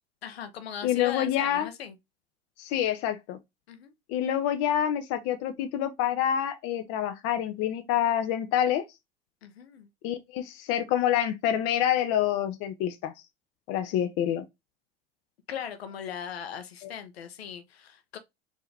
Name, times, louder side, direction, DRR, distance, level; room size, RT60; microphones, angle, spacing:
voice 1, 0.2-2.0 3.7-3.9 9.4-9.9 15.5-18.2, left 8 dB, 75° left, 0.9 m, -39 dB
voice 2, 0.8-1.7 2.6-3.4 4.1-8.8 10.0-13.1 13.7-14.4 16.8-16.9, left 10 dB, 50° left, 0.8 m, -27 dB
4.5 x 2.9 x 3.3 m
figure-of-eight pair, 80°, 31 cm